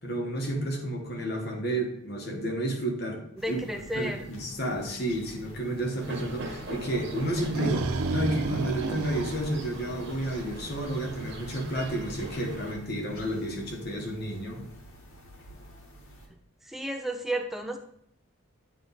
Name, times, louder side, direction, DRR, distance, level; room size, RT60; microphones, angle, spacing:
voice 1, 0.0-3.6 3.9-14.6, right 1 dB, 45° left, 1 dB, 1.2 m, -31 dB
sound 1, 3.4-16.3, equal, 80° left, 1.4 m, -48 dB
voice 2, 3.4-4.3 16.6-17.8, right 1 dB, ahead, 4 dB, 0.5 m, -32 dB
sound 2, 6.0-12.7, right 2 dB, 55° right, 1.3 m, -41 dB
sound 3, 7.2-10.5, right 3 dB, 85° right, 0.5 m, -31 dB
9.3 x 3.3 x 4.0 m, 0.71 s
head